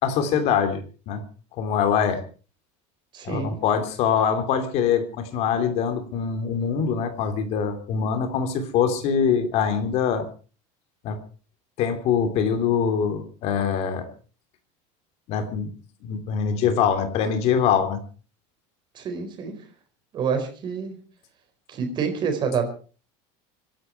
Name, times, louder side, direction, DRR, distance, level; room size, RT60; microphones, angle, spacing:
voice 1, 0.0-0.8 1.1-1.2 1.6-2.2 3.2-10.3 11.0-11.2 11.8-14.1 15.3-15.7 16.0-18.0, left 7 dB, 45° left, 8 dB, 3.0 m, -23 dB
voice 2, 3.1-3.6 18.9-19.5 20.1-21.0 21.7-22.8, right 6 dB, 30° right, 6 dB, 4.6 m, -27 dB
25.5 x 11.5 x 4.6 m, 0.39 s
cardioid pair, 170°, 16 cm